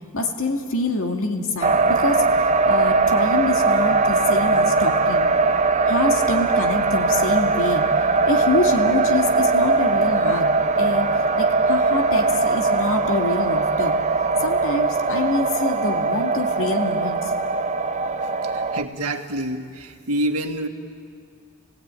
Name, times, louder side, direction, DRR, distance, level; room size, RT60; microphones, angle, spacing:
voice 1, 0.1-5.5 5.9-7.9 8.3-10.5 10.8-11.1 11.4-14.0 14.4-17.3, left 2 dB, 65° left, 3 dB, 2.4 m, -26 dB
sound 1, 1.6-18.8, right 3 dB, 30° right, 0.7 m, -20 dB
voice 2, 18.4-20.7, right 1 dB, 75° right, 4 dB, 1.9 m, -27 dB
28.5 x 17.0 x 9.1 m, 2.3 s
head